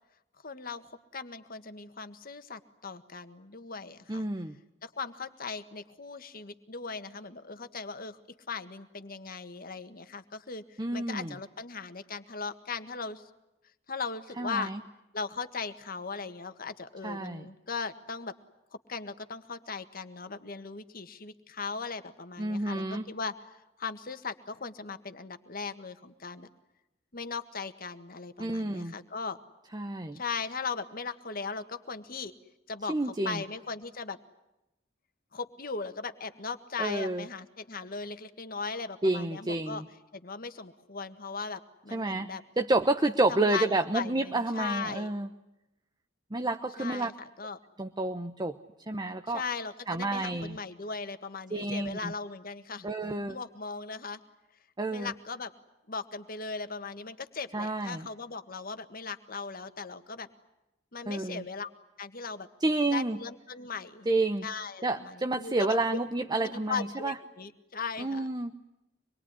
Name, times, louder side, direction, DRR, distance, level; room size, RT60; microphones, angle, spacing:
voice 1, 0.4-4.3 4.8-8.2 8.5-13.2 13.9-14.7 15.1-18.3 18.9-23.3 23.8-26.5 27.1-29.4 30.1-32.3 32.7-32.9 33.2-34.2 35.3-39.8 40.1-42.4 43.3-45.1 46.8-47.6 49.3-52.9 53.2-54.2 54.9-55.5 55.9-60.3 60.9-61.7 62.0-62.5 62.9-64.1 64.4-68.3, left 4 dB, 50° left, 10 dB, 1.7 m, -38 dB
voice 2, 4.1-4.5 10.8-11.4 14.4-14.8 17.0-17.5 22.4-23.0 28.4-28.9 29.7-30.2 32.9-33.4 36.8-37.3 39.0-39.8 41.9-42.3 42.6-45.3 46.3-47.1 47.8-48.6 48.9-49.4 49.9-50.6 51.5-52.1 52.8-53.4 54.8-55.1 57.5-58.1 61.1-61.4 62.6-63.2 64.1-64.5 64.8-67.1 68.0-68.5, right 2 dB, 20° right, 6 dB, 0.9 m, -29 dB
26.0 x 22.0 x 9.7 m, 0.94 s
head